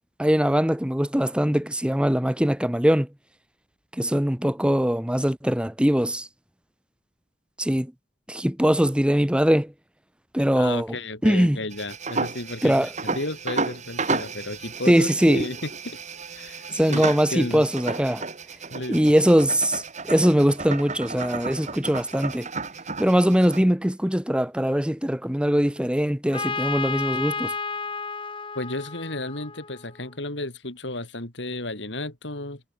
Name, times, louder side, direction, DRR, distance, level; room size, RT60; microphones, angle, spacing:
voice 1, 0.2-3.1 4.0-6.3 7.6-7.9 8.3-9.7 10.3-11.0 11.2-11.6 12.6-12.9 14.9-15.5 16.7-18.2 18.9-22.5 23.0-27.5, equal, 5° right, 1.1 m, -21 dB
voice 2, 10.5-16.0 16.3-17.6 18.7-19.0 28.5-32.6, left 2 dB, 75° left, 4.6 m, -33 dB
sound 1, 11.7-23.6, right 4 dB, 40° right, 4.8 m, -33 dB
Trumpet, 26.3-30.1, left 5 dB, 30° left, 2.6 m, -32 dB
head